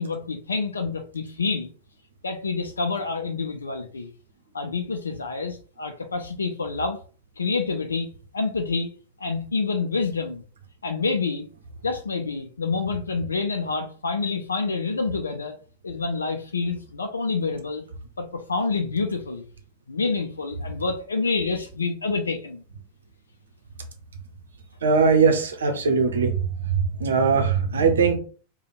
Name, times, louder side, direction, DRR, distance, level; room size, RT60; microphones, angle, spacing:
voice 1, 0.0-1.7 2.2-4.1 4.5-7.0 7.4-8.9 9.2-10.4 10.8-11.5 11.8-15.6 15.8-17.9 18.2-19.4 19.9-22.6, left 4 dB, 75° left, 5 dB, 0.4 m, -27 dB
voice 2, 24.8-28.2, right 5 dB, 65° right, 5 dB, 0.8 m, -20 dB
3.3 x 2.3 x 4.0 m, 0.39 s
figure-of-eight pair, 90°, 0 cm